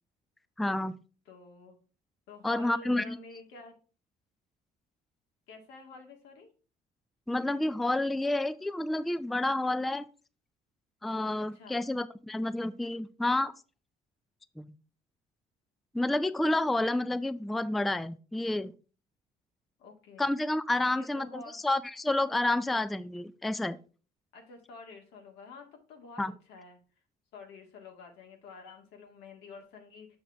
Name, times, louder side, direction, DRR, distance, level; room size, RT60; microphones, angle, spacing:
voice 1, 0.6-1.0 2.4-3.2 7.3-10.0 11.0-13.5 14.6-14.7 15.9-18.7 20.2-23.8 26.2-26.3, left 2 dB, ahead, 14 dB, 0.3 m, -29 dB
voice 2, 1.3-1.8 2.3-3.8 5.5-6.5 11.3-11.8 19.8-20.3 20.8-21.6 24.3-26.8 27.3-30.1, left 3 dB, 85° left, 3 dB, 1.8 m, -49 dB
6.4 x 6.4 x 3.4 m, 0.36 s
cardioid pair, 110°, 17 cm